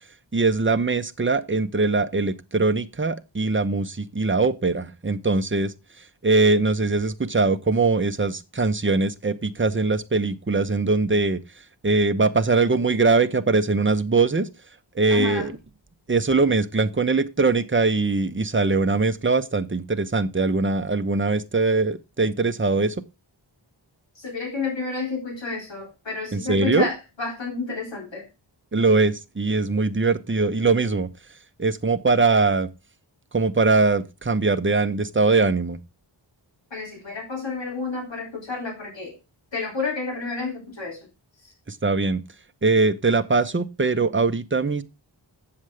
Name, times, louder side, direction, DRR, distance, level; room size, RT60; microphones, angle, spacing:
voice 1, 0.3-5.7 6.2-11.4 11.8-14.5 14.9-15.6 16.1-23.0 26.3-26.9 28.7-31.1 31.6-32.7 33.3-35.8 41.7-42.2 42.6-44.8, right 3 dB, 25° right, 0.8 m, -21 dB
voice 2, 15.1-15.5 24.2-28.3 36.7-39.2 39.5-41.0, left 4 dB, 65° left, 4.2 m, -30 dB
7.7 x 7.4 x 4.8 m
wide cardioid pair, 70°, 46 cm